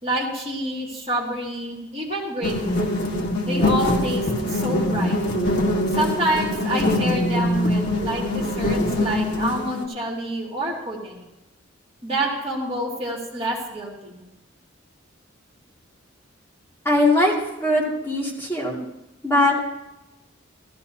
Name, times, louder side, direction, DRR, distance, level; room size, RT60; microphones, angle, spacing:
voice 1, 0.0-2.9 3.5-5.2 6.0-11.2 12.0-14.2, right 1 dB, 30° right, -3 dB, 2.5 m, -28 dB
sound 1, 2.4-9.8, left 1 dB, 55° left, 1.5 m, -23 dB
voice 2, 16.8-17.3 17.6-18.8 19.2-19.6, left 1 dB, 10° left, -5 dB, 2.4 m, -20 dB
15.5 x 13.5 x 2.8 m, 0.96 s
head